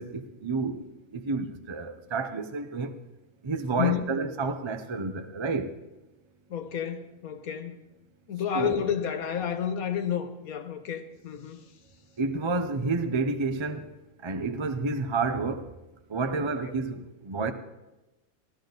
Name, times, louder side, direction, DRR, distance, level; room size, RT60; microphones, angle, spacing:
voice 1, 0.0-2.9 3.4-5.7 8.5-8.8 12.2-13.9 14.2-15.7 16.1-17.5, right 3 dB, 35° right, 0.4 m, -30 dB
voice 2, 3.8-4.1 6.5-7.8 8.3-11.6, left 9 dB, 90° left, 1.5 m, -30 dB
16.0 x 13.0 x 4.0 m
omnidirectional pair, 1.5 m